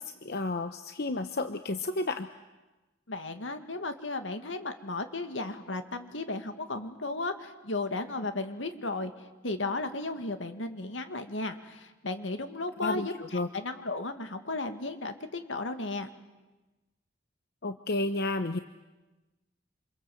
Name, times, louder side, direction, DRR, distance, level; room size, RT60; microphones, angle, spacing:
voice 1, 0.0-2.3 12.8-13.5 17.6-18.6, left 2 dB, 60° left, 8 dB, 1.0 m, -31 dB
voice 2, 3.1-9.1 9.4-13.1 13.5-16.1, left 2 dB, 80° left, 7 dB, 2.2 m, -34 dB
28.0 x 26.5 x 7.9 m, 1.1 s
head